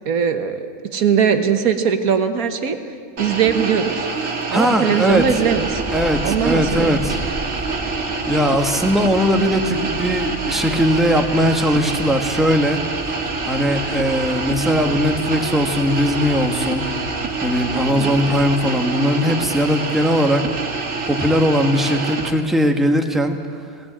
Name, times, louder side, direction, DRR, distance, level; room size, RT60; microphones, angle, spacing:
voice 1, 0.1-2.8 3.2-4.1 4.5-5.8 6.2-7.0 17.9-18.1, right 7 dB, 80° right, 8 dB, 1.7 m, -20 dB
sound 1, 3.2-22.3, right 4 dB, 60° right, 2.0 m, -26 dB
voice 2, 4.3-5.3 5.9-7.2 7.9-12.8 13.4-16.9 17.4-20.5 21.1-23.4, equal, ahead, 4 dB, 1.3 m, -19 dB
sound 2, 5.1-18.7, right 1 dB, 20° right, 1.4 m, -35 dB
18.5 x 17.0 x 8.8 m, 2.3 s
omnidirectional pair, 1.5 m